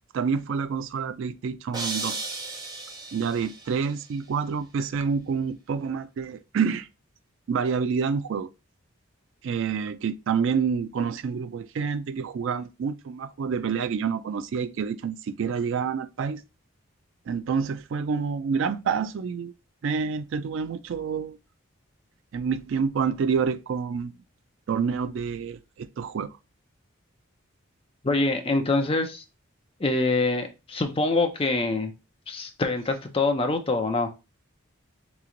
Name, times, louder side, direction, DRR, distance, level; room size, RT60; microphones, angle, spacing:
voice 1, 0.1-2.2 3.1-6.9 7.5-8.5 9.4-16.4 17.3-19.5 19.8-21.4 22.3-24.1 24.7-26.4, right 6 dB, 60° right, 0.3 m, -28 dB
sound 1, 1.7-3.8, right 3 dB, 20° right, 0.6 m, -34 dB
voice 2, 28.0-29.2 29.8-31.9 32.3-34.1, left 3 dB, 25° left, 0.5 m, -25 dB
3.3 x 3.1 x 3.7 m
head